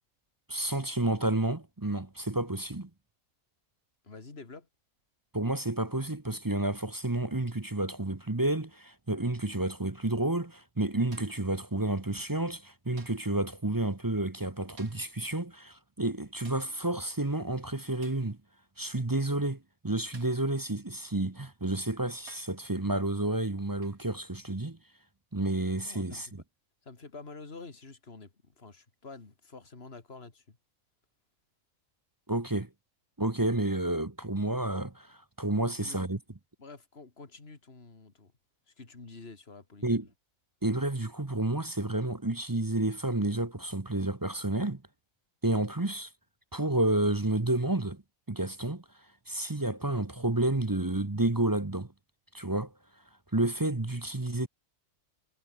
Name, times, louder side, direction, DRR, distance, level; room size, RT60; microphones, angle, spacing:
voice 1, 0.5-2.9 5.3-18.4 18.8-24.8 25.3-26.4 32.3-32.7 33.2-36.2 39.8-40.1 40.6-44.8 45.4-46.1 46.5-48.0 48.3-48.8 49.3-51.9 52.3-52.7 53.3-54.5, right 2 dB, 15° right, 0.9 m, -30 dB
voice 2, 4.0-4.7 25.8-26.3 26.8-30.6 35.7-36.1 36.6-38.3 38.7-40.0, left 3 dB, 45° left, 2.9 m, -48 dB
sound 1, 11.1-11.5 13.0-13.4 14.8-15.2 16.4-16.8 18.0-18.3 20.1-20.5 21.5-21.6 22.3-22.6 23.8-24.1 25.7-25.9, right 4 dB, 85° right, 3.4 m, -56 dB
omnidirectional pair, 1.5 m